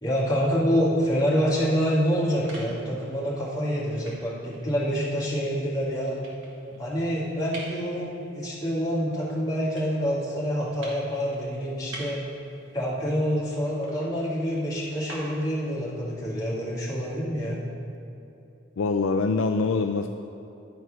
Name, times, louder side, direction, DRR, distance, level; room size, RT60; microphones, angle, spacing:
voice 1, 0.0-6.2 6.8-12.2 12.7-17.6, equal, 20° left, -8 dB, 2.2 m, -27 dB
sound 1, 1.8-15.8, right 1 dB, 70° right, 1.9 m, -48 dB
voice 2, 18.8-20.1, left 4 dB, 70° left, 5 dB, 0.4 m, -24 dB
11.5 x 4.6 x 6.0 m, 2.8 s
head